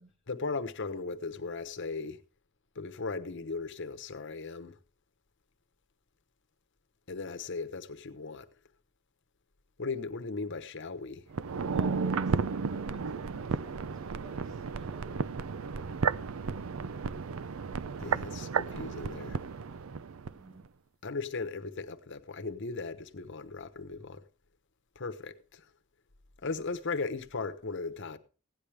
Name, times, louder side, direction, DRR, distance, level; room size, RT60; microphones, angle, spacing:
voice 1, 0.3-2.2 2.7-4.8 7.1-8.5 9.8-11.3 18.0-19.4 21.0-24.2 24.9-25.7 26.4-28.2, left 4 dB, 60° left, 1.0 m, -37 dB
sound 1, 11.3-20.4 20.7-20.8, right 5 dB, 75° right, 0.5 m, -33 dB
voice 2, 11.7-15.3 20.3-20.7, right 1 dB, ahead, 1.5 m, -53 dB
16.5 x 10.5 x 3.4 m
head